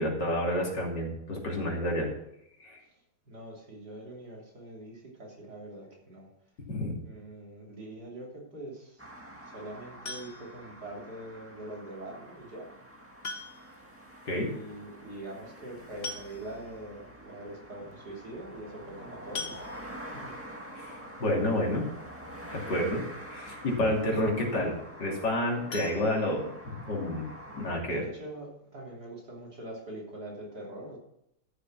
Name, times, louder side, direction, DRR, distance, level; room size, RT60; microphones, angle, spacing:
voice 1, 0.0-2.1 2.6-2.8 6.7-6.9 14.3-14.5 20.8-21.8 22.5-23.0 23.3-27.3 27.5-28.0, left 1 dB, 85° left, -1 dB, 3.4 m, -29 dB
voice 2, 3.3-6.3 7.0-9.0 9.4-12.7 14.3-19.7 20.0-20.3 27.5-27.6 27.8-31.0, right 1 dB, 65° right, -2 dB, 3.8 m, -43 dB
sound 1, 9.0-27.8, right 1 dB, 10° right, 1.7 m, -47 dB
sound 2, 10.0-10.7 12.2-12.3 13.2-13.8 14.1-14.2 14.5-14.6 15.6-15.7 16.0-16.7 17.3-17.4 17.7-17.9 19.3-20.2 25.7-26.9 27.2-27.3 27.8-27.9 28.2-28.3, left 3 dB, 40° left, 1.3 m, -41 dB
13.5 x 6.8 x 6.2 m, 0.80 s
omnidirectional pair, 1.9 m